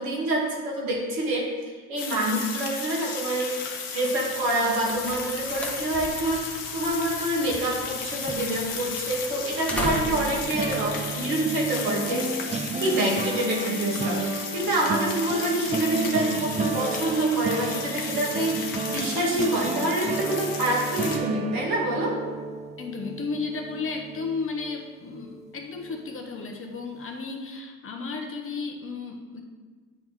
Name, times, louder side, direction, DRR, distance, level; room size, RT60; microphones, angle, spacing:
voice 1, 0.0-12.5 12.8-22.2, right 1 dB, 65° right, -3 dB, 2.3 m, -27 dB
sound 1, 2.0-21.2, left 6 dB, 55° left, 1.2 m, -34 dB
sound 2, 4.4-11.8, equal, 5° left, 1.1 m, -38 dB
sound 3, 9.7-24.8 25.2-25.5 25.8-26.0, right 4 dB, 20° right, 0.6 m, -32 dB
voice 2, 22.8-29.4, left 4 dB, 35° left, 2 dB, 1.1 m, -33 dB
9.4 x 3.5 x 4.7 m, 1.4 s
hypercardioid pair, 70°, 38 cm